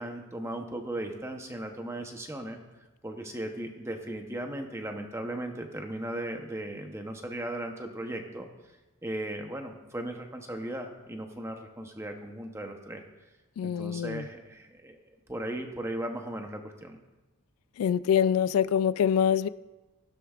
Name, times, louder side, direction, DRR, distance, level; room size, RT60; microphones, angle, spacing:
voice 1, 0.0-2.6 3.0-8.5 9.0-13.0 13.6-15.0 15.3-17.0, right 1 dB, 10° right, 4 dB, 0.8 m, -37 dB
voice 2, 13.6-14.2 17.8-19.5, left 8 dB, 80° left, 16 dB, 0.3 m, -25 dB
15.0 x 11.5 x 2.4 m, 1.1 s
head